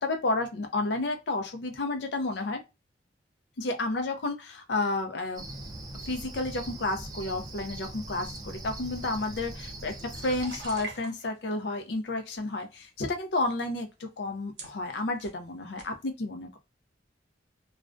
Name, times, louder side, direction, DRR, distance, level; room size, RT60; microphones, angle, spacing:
voice 1, 0.0-2.6 3.6-5.5 6.1-9.9 10.2-16.6, left 2 dB, 70° left, 0.5 m, -31 dB
Cricket, 5.3-10.8, right 1 dB, 20° right, 0.4 m, -41 dB
sound 1, 8.2-11.5 12.2-12.8 13.5-13.6 14.3-14.4 14.6-15.4 15.8-15.9, right 3 dB, 70° right, 0.8 m, -46 dB
2.4 x 2.1 x 2.4 m
head